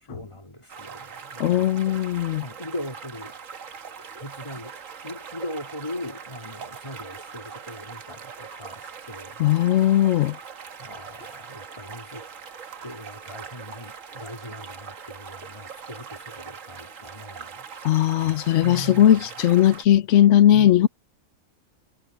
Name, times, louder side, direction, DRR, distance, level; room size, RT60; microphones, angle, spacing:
voice 1, 0.1-2.1 2.4-3.4 4.2-4.8 5.0-9.4 9.7-10.0 10.8-12.3 12.8-17.7 18.6-19.3 20.5-20.9, left 1 dB, 20° left, 2.9 m, -39 dB
sound 1, 0.7-19.9, right 6 dB, 75° right, 1.6 m, -41 dB
voice 2, 1.4-2.4 9.4-10.4 17.8-20.9, left 11 dB, 70° left, 0.9 m, -18 dB
omnidirectional pair, 1.4 m